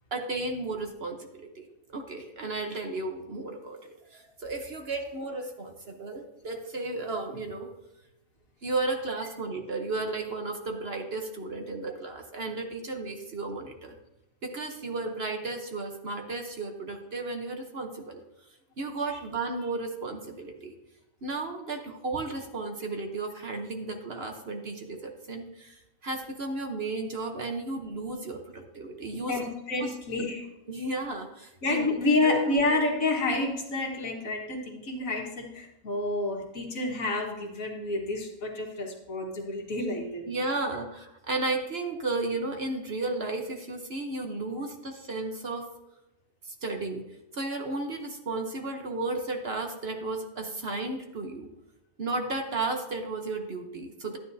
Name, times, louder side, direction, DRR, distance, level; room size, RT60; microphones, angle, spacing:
voice 1, 0.1-7.7 8.6-13.9 14.4-18.2 18.8-20.7 21.2-29.3 29.8-29.9 30.7-31.9 32.2-32.4 40.3-45.7 46.4-47.0 47.3-51.5 52.0-54.2, right 3 dB, 50° right, 4 dB, 1.1 m, -34 dB
voice 2, 29.3-30.5 31.6-40.3, left 2 dB, 65° left, 0 dB, 1.9 m, -29 dB
11.5 x 9.8 x 2.7 m, 0.95 s
omnidirectional pair, 1.5 m